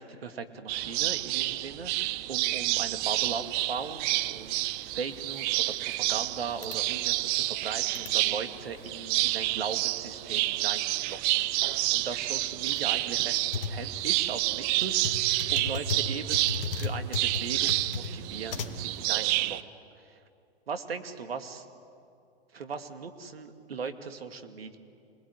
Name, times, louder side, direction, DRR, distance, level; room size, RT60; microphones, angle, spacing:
voice 1, 0.0-13.4 13.7-15.2 15.5-19.6 20.1-20.2 20.7-21.6 22.5-24.8, right 5 dB, 75° right, 8 dB, 2.4 m, -38 dB
sound 1, 0.7-19.6, right 18 dB, 30° right, 0.7 m, -29 dB
sound 2, 3.0-19.0, left 4 dB, 65° left, 2.0 m, -40 dB
26.5 x 21.0 x 9.9 m, 2.5 s
figure-of-eight pair, 110°, 30 cm